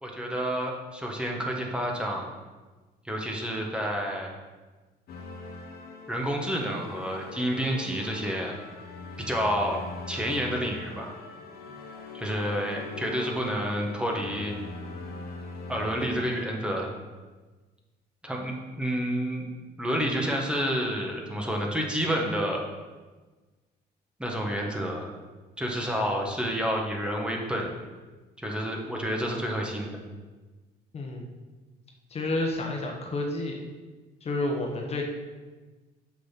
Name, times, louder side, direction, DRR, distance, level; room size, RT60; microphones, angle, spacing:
voice 1, 0.0-2.3 3.0-4.3 6.1-8.5 9.3-9.8 10.1-11.1 12.1-14.5 15.7-16.9 18.2-19.5 19.8-22.6 24.2-25.1 25.6-27.7 28.4-30.0, equal, 5° right, -1 dB, 1.4 m, -29 dB
sound 1, 5.1-16.5, left 3 dB, 65° left, 1.2 m, -41 dB
voice 2, 30.9-31.3 32.1-33.6 34.2-35.0, left 2 dB, 35° left, 1 dB, 1.3 m, -30 dB
6.5 x 6.3 x 5.9 m, 1.3 s
cardioid pair, 110°, 17 cm